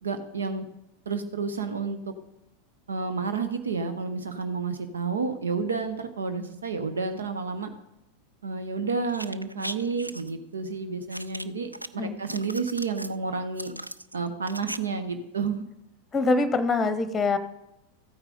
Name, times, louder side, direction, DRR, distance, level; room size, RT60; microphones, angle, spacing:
voice 1, 0.0-0.7 1.1-2.0 2.9-7.7 8.4-13.7 14.1-15.6, right 4 dB, 70° right, 8 dB, 0.8 m, -30 dB
sound 1, 9.1-10.3 11.1-11.9 12.2-13.1 13.6-14.8 15.0-15.1, right 1 dB, 85° right, 0.3 m, -38 dB
voice 2, 16.1-17.4, left 3 dB, 20° left, 12 dB, 0.9 m, -24 dB
14.5 x 8.9 x 3.9 m, 0.87 s
figure-of-eight pair, 90°, 0 cm